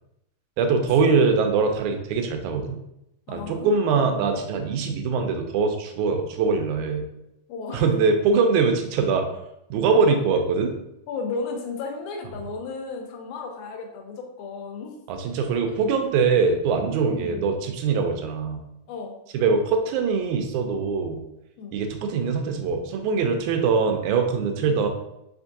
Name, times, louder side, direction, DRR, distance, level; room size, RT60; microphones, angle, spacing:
voice 1, 0.6-2.8 3.3-7.1 7.7-9.3 9.7-10.7 15.1-18.6 19.3-21.2 21.7-24.9, right 5 dB, 85° right, 5 dB, 2.0 m, -22 dB
voice 2, 3.3-4.4 7.5-7.9 10.3-10.4 11.1-15.0 15.7-15.8 17.1-17.5 18.9-19.2 21.6-21.7 24.6-24.7, left 4 dB, 85° left, 3 dB, 2.1 m, -35 dB
5.0 x 3.5 x 2.6 m, 0.85 s
omnidirectional pair, 3.4 m